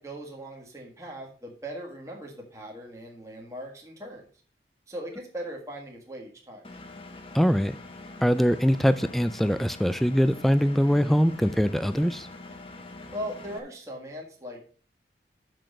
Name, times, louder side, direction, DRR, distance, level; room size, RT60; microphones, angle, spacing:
voice 1, 0.0-4.3 4.9-6.7 13.1-14.6, equal, 15° right, -1 dB, 1.7 m, -39 dB
Engine, 6.6-13.6, left 2 dB, 30° left, 1.1 m, -44 dB
voice 2, 7.3-7.8 8.2-12.3, equal, ahead, 13 dB, 0.3 m, -22 dB
6.6 x 6.2 x 6.5 m, 0.41 s
head